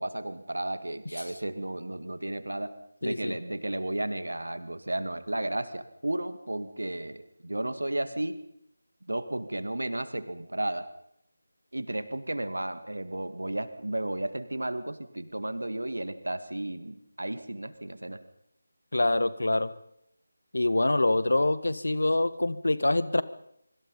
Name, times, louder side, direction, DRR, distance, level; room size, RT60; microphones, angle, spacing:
voice 1, 0.0-2.7 3.0-8.4 9.1-10.9 11.7-18.2, right 1 dB, 70° right, 11 dB, 2.2 m, -33 dB
voice 2, 3.0-3.4 18.9-19.7 20.5-23.2, left 2 dB, 65° left, 15 dB, 1.5 m, -25 dB
25.0 x 24.5 x 5.5 m, 0.73 s
figure-of-eight pair, 160°, 0 cm